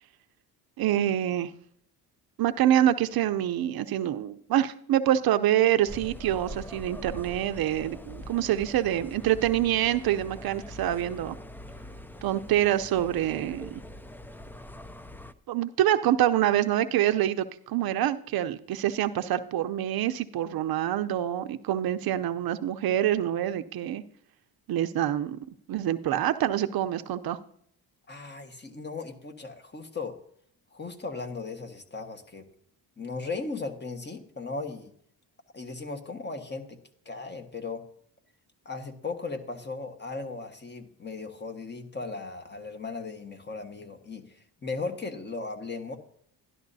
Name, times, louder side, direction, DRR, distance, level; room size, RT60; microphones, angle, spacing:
voice 1, 0.8-1.5 2.4-11.4 12.2-13.8 15.5-24.0 24.7-25.4 25.7-27.4, right 12 dB, 65° right, 10 dB, 0.7 m, -26 dB
sound 1, 5.9-15.3, equal, 5° left, 0.4 m, -43 dB
voice 2, 28.1-30.2 30.7-32.5 33.0-34.9 35.5-36.8 37.0-37.8 38.6-46.0, left 3 dB, 25° left, 6 dB, 1.4 m, -37 dB
12.5 x 11.5 x 2.7 m, 0.66 s
cardioid pair, 85°, 40 cm